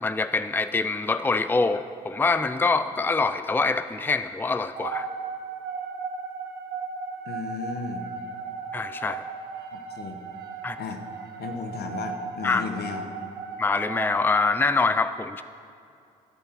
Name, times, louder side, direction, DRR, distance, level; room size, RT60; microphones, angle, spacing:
voice 1, 0.0-5.1 8.7-9.3 10.6-10.8 12.4-12.6 13.6-15.4, left 3 dB, 10° left, 12 dB, 0.5 m, -25 dB
sound 1, 4.7-14.3, right 5 dB, 65° right, 1.6 m, -36 dB
voice 2, 7.2-8.1 9.7-10.2 10.8-11.0 11.4-13.1, left 5 dB, 65° left, 6 dB, 1.3 m, -34 dB
14.0 x 12.0 x 4.6 m, 2.5 s
hypercardioid pair, 50°, 18 cm